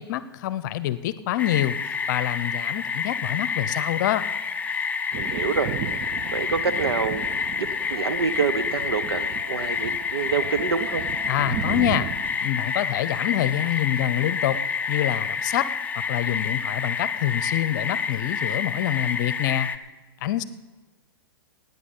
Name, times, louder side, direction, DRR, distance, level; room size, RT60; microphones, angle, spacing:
voice 1, 0.0-1.8 2.1-4.2 11.3-12.1 12.4-14.6 14.9-15.7 16.1-19.7 20.2-20.4, left 13 dB, 50° left, 15 dB, 0.7 m, -26 dB
sound 1, 1.4-19.8, left 6 dB, 10° left, 0.6 m, -28 dB
Thunder, 5.1-12.4, right 9 dB, 35° right, 0.7 m, -35 dB
voice 2, 5.1-7.3 7.6-11.0, right 6 dB, 75° right, 11 dB, 1.0 m, -27 dB
17.5 x 9.4 x 5.4 m, 1.3 s
hypercardioid pair, 120°, 13 cm